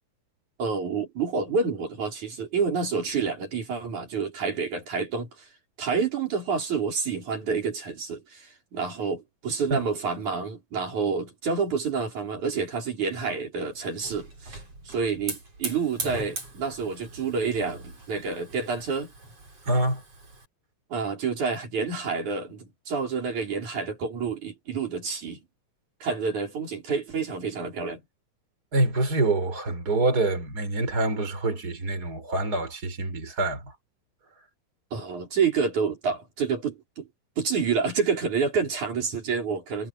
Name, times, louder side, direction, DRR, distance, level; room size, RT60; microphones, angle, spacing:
voice 1, 0.6-5.3 5.8-14.6 14.9-19.1 20.9-25.4 26.0-28.0 34.9-37.1 37.4-39.9, right 5 dB, 80° right, 6.5 m, -28 dB
Hiss / Fire, 13.6-20.4, right 3 dB, 55° right, 8.6 m, -40 dB
voice 2, 19.7-20.0 28.7-33.6, right 2 dB, 30° right, 5.4 m, -26 dB
omnidirectional pair, 3.4 m